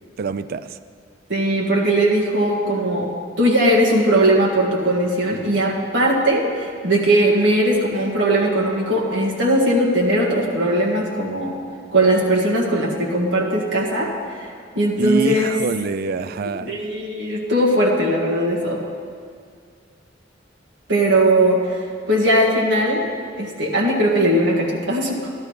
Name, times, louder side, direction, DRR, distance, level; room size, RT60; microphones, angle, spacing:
voice 1, 0.2-0.8 15.0-16.8, right 5 dB, 55° right, 13 dB, 0.4 m, -25 dB
voice 2, 1.3-11.5 11.9-14.1 14.7-15.6 16.6-18.8 20.9-21.8 22.1-23.0 23.4-25.3, right 1 dB, 85° right, -3 dB, 1.9 m, -19 dB
13.0 x 12.0 x 3.2 m, 2.1 s
head